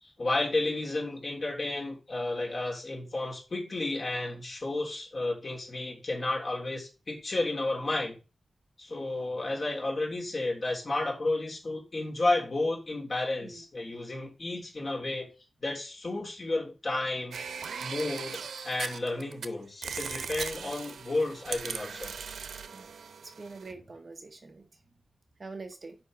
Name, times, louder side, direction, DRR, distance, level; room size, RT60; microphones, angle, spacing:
voice 1, 0.0-8.2 8.8-15.3 15.6-17.4 17.8-22.1, left 2 dB, 35° left, -2 dB, 3.2 m, -32 dB
sound 1, 17.3-19.5 19.8-23.7, right 6 dB, 85° right, 0.7 m, -39 dB
voice 2, 23.4-24.7 25.4-26.0, right 3 dB, 30° right, 6 dB, 1.0 m, -44 dB
8.0 x 5.3 x 5.2 m, 0.31 s
wide cardioid pair, 165°, 0 cm